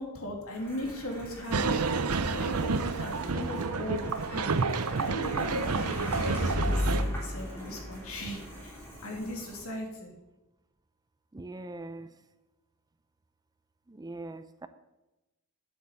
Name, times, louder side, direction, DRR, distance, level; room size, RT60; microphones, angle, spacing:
voice 1, 0.0-8.7 9.0-10.1, left 1 dB, 70° left, 1 dB, 2.9 m, -39 dB
sound 1, 0.5-9.6, equal, 10° left, 3.2 m, -36 dB
sound 2, 1.5-7.0, right 4 dB, 80° right, 0.7 m, -29 dB
voice 2, 3.2-3.8 11.3-12.1 13.9-14.7, right 2 dB, 15° right, 12 dB, 0.5 m, -42 dB
9.5 x 8.3 x 7.0 m, 1.0 s
head